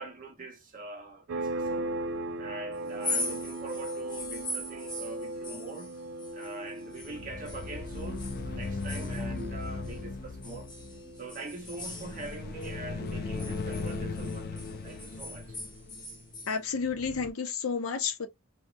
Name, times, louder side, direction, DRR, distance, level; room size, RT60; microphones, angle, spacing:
voice 1, 0.0-1.9 2.4-6.0 6.3-10.7 11.2-15.6, right 3 dB, 40° right, 0.9 m, -43 dB
sound 1, 1.3-11.6, right 1 dB, 65° right, 0.5 m, -38 dB
sound 2, 2.9-7.1 7.4-10.0 10.4-12.8 13.1-16.6, left 2 dB, 20° left, 1.0 m, -40 dB
sound 3, 7.0-17.3, left 3 dB, 50° left, 0.3 m, -38 dB
voice 2, 16.5-18.3, left 5 dB, 85° left, 0.6 m, -31 dB
2.7 x 2.1 x 2.2 m
head